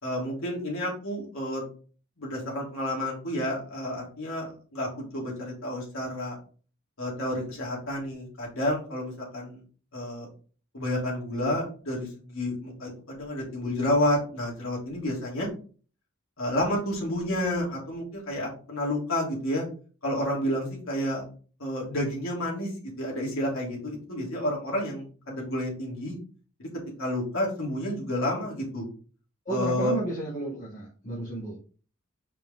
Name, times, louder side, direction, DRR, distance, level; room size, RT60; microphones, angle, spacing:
voice 1, 0.0-1.6 2.2-4.9 5.1-6.4 7.0-9.6 9.9-10.3 10.7-15.5 16.4-19.6 20.0-21.2 21.6-22.7 23.0-26.2 26.6-26.7 27.0-28.9 29.5-29.9, left 1 dB, 65° left, -4 dB, 3.4 m, -30 dB
voice 2, 29.5-31.6, right 2 dB, 40° left, -6 dB, 2.2 m, -32 dB
5.7 x 5.1 x 3.7 m, 0.40 s
head